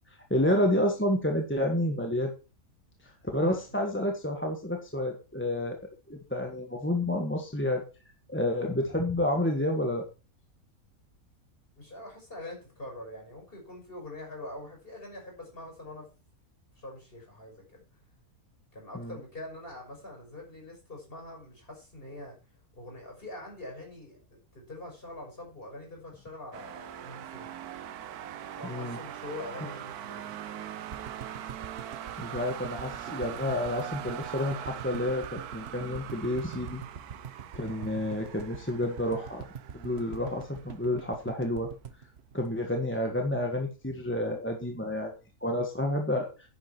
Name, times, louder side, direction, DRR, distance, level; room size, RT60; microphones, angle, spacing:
voice 1, 0.3-2.3 3.3-5.8 6.1-7.8 8.3-10.0 18.9-19.1 28.6-29.0 32.2-36.8 37.5-39.4 39.7-41.7 42.3-45.1 45.4-46.3, left 1 dB, 10° left, 2 dB, 1.5 m, -29 dB
voice 2, 3.3-3.6 11.8-16.1 16.8-17.8 18.7-22.4 22.7-27.5 28.6-30.3 37.8-37.9, left 1 dB, 35° left, 1 dB, 6.0 m, -44 dB
sound 1, 26.5-41.4, right 10 dB, 85° right, 1.3 m, -42 dB
sound 2, 30.9-43.1 43.4-43.5 43.7-43.8, right 7 dB, 45° right, 1.3 m, -44 dB
10.5 x 10.0 x 4.5 m, 0.33 s
omnidirectional pair, 1.6 m